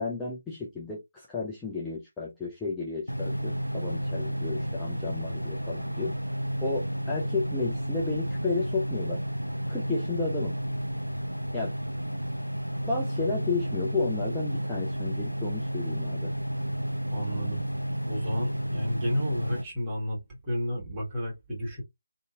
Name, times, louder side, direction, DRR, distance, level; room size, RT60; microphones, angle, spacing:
voice 1, 0.0-6.2 6.6-9.2 9.7-10.5 11.5-11.7 12.9-16.3, left 4 dB, 5° left, 0.5 m, -32 dB
sound 1, 3.1-19.6, equal, 90° right, 0.4 m, -31 dB
voice 2, 17.1-17.6 18.1-21.8, equal, 15° right, 1.5 m, -32 dB
2.7 x 2.7 x 2.3 m
figure-of-eight pair, 150°, 0 cm